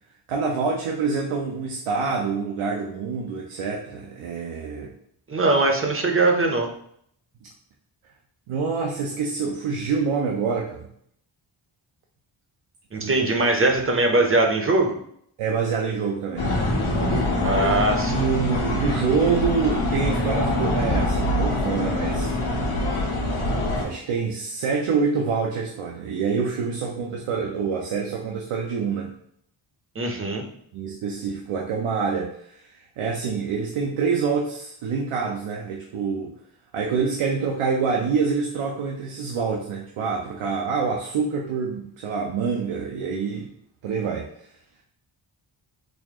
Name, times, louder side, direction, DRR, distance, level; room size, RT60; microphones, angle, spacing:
voice 1, 0.3-4.9 8.5-10.9 13.0-13.1 15.4-16.5 18.1-22.3 23.8-29.1 30.7-36.3 36.7-43.5 43.8-44.3, right 5 dB, 85° right, 0 dB, 0.6 m, -26 dB
voice 2, 5.3-6.7 12.9-14.9 17.4-18.3 30.0-30.5, right 2 dB, 30° right, 3 dB, 0.6 m, -21 dB
sound 1, 16.4-23.8, left 1 dB, 80° left, 1.2 m, -24 dB
4.1 x 2.4 x 2.8 m, 0.68 s
wide cardioid pair, 95°, 48 cm